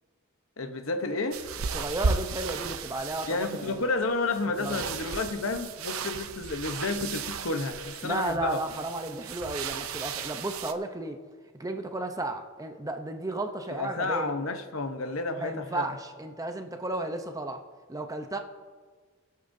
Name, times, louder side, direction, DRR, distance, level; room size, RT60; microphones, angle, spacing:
voice 1, 0.6-1.4 3.3-8.6 13.7-15.9, left 3 dB, 70° left, 8 dB, 0.9 m, -31 dB
sound 1, 1.3-10.7, right 5 dB, 85° right, 0.7 m, -35 dB
voice 2, 1.7-3.8 4.6-4.9 8.0-11.2 11.6-14.3 15.4-17.6 17.9-18.4, right 2 dB, 15° right, 6 dB, 0.6 m, -33 dB
25.0 x 8.4 x 2.7 m, 1.5 s
head